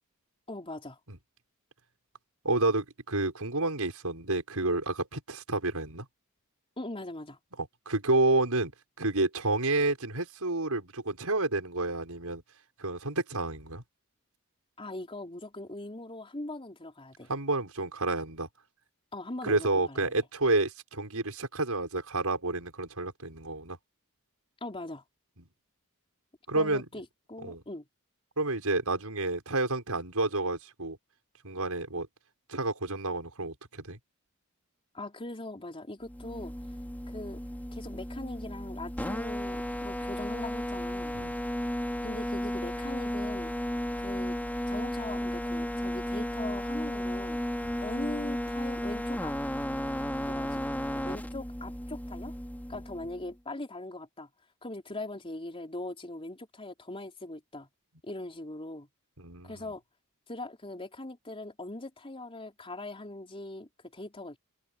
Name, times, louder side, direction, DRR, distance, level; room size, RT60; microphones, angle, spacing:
voice 1, 0.5-1.0 6.8-7.4 14.8-17.3 19.1-20.1 24.6-25.0 26.5-27.8 34.9-36.5 37.1-37.4 37.7-41.2 42.0-43.5 44.0-44.4 44.7-47.4 47.8-49.4 50.2-50.6 51.0-52.3 52.7-54.3 54.6-57.7 58.0-58.9 59.5-59.8 60.3-64.4, left 2 dB, 25° left, 3.9 m, -40 dB
voice 2, 2.4-6.1 7.9-8.7 9.0-12.4 12.8-13.8 17.3-18.5 19.4-23.8 26.5-26.9 27.4-27.6 28.4-31.0 31.4-32.1 32.5-34.0 41.1-41.3 47.6-47.8 59.2-59.7, right 2 dB, 85° right, 5.9 m, -30 dB
sound 1, 36.1-53.3, equal, 10° left, 3.9 m, -34 dB
open air
head